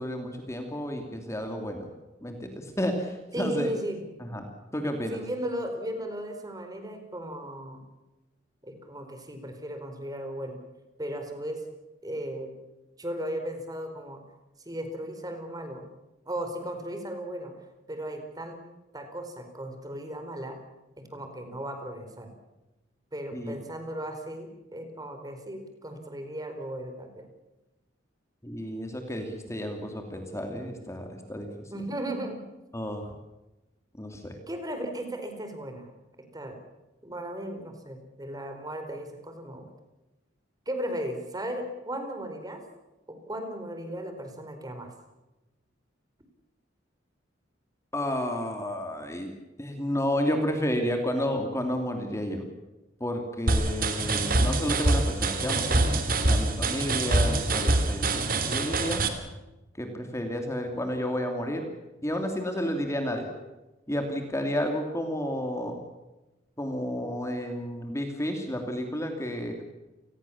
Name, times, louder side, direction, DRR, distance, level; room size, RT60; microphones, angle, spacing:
voice 1, 0.0-1.9 2.2-3.7 4.2-4.5 4.7-5.2 23.3-23.5 28.4-31.5 32.7-33.1 34.0-34.4 47.9-49.3 49.6-52.4 53.0-59.0 59.8-61.7 62.0-63.3 63.9-65.8 66.6-69.6, equal, 15° left, 4 dB, 2.9 m, -31 dB
voice 2, 3.3-4.0 5.1-7.8 8.6-10.6 11.0-11.6 12.0-12.5 13.0-14.2 14.7-15.8 16.3-17.5 17.9-18.6 18.9-20.6 21.0-22.3 23.1-27.2 31.7-32.4 34.5-35.9 36.3-36.6 37.0-39.7 40.7-42.6 43.1-44.9, right 1 dB, 20° right, 6 dB, 4.4 m, -36 dB
sound 1, 53.5-59.1, right 2 dB, 50° right, 3.0 m, -25 dB
29.5 x 20.5 x 7.3 m, 1.0 s
head